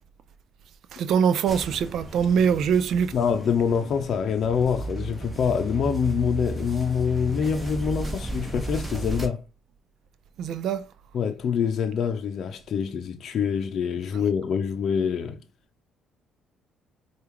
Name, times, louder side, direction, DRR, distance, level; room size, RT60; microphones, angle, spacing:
voice 1, 0.9-3.1 10.4-10.9, right 7 dB, 65° right, 0.4 m, -23 dB
sound 1, 1.5-9.3, right 2 dB, 20° right, 1.2 m, -34 dB
voice 2, 3.1-9.4 11.1-15.4, left 7 dB, 60° left, 0.6 m, -25 dB
4.8 x 2.4 x 3.0 m
supercardioid pair, 65°, 0 cm